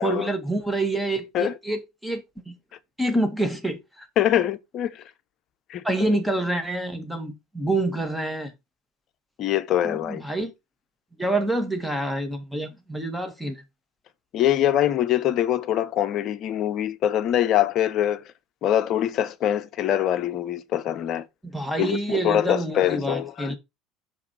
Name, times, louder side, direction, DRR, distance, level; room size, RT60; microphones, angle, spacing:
voice 1, 0.0-2.5 3.0-4.1 5.8-8.5 9.8-10.5 11.2-13.6 21.4-23.6, right 2 dB, 5° right, 2.2 m, -27 dB
voice 2, 4.2-5.0 5.7-6.2 9.4-10.2 14.3-18.2 18.6-21.3 21.8-23.5, left 11 dB, 50° left, 0.8 m, -24 dB
6.3 x 4.7 x 4.5 m
figure-of-eight pair, 65°, 0 cm